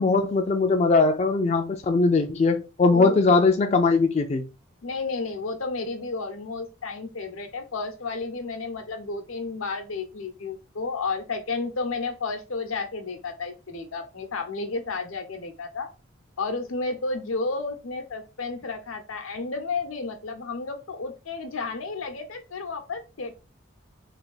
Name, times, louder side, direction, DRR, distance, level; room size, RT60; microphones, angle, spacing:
voice 1, 0.0-4.4, left 3 dB, 30° left, 0.3 m, -20 dB
voice 2, 4.8-15.9 16.4-23.3, left 3 dB, 85° left, 0.8 m, -32 dB
3.3 x 2.7 x 3.9 m
head